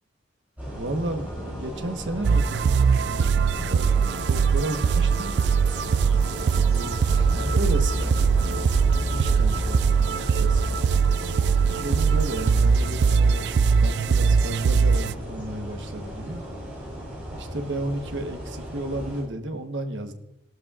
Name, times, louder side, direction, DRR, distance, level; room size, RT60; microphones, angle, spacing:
sound 1, 0.6-16.8, equal, 15° left, 1.0 m, -46 dB
sound 2, 0.6-19.2, equal, 10° right, 5.2 m, -34 dB
voice 1, 0.7-5.4 6.6-10.8 11.6-16.4 17.3-20.1, right 1 dB, 80° right, 6 dB, 1.2 m, -33 dB
sound 3, 2.2-15.1, right 5 dB, 65° right, 0.3 m, -21 dB
17.0 x 13.0 x 2.4 m, 0.81 s
head